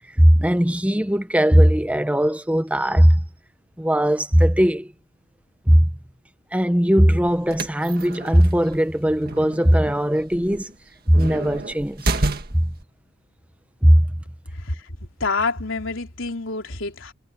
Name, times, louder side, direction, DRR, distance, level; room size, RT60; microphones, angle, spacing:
voice 1, 0.2-3.2 3.8-4.9 5.7-5.9 6.5-10.7 11.1-12.1 12.5-12.7 13.8-14.0, equal, 5° right, 1.0 m, -18 dB
sound 1, 7.3-12.8, right 2 dB, 50° right, 1.8 m, -30 dB
voice 2, 15.2-17.1, left 3 dB, 80° left, 3.6 m, -27 dB
head